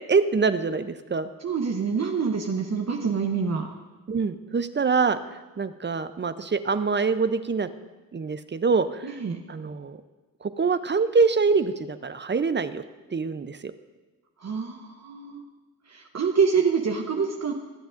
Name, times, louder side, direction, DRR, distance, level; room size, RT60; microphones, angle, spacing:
voice 1, 0.1-1.3 4.1-5.2 5.6-7.7 8.1-9.1 9.5-10.0 10.4-12.8 13.1-13.7, right 4 dB, 30° right, 11 dB, 0.6 m, -24 dB
voice 2, 1.4-3.7 9.0-9.4 14.4-15.4 15.9-17.5, right 5 dB, 45° right, 2 dB, 0.9 m, -26 dB
20.0 x 8.0 x 2.6 m, 1.2 s
cardioid pair, 50°, 36 cm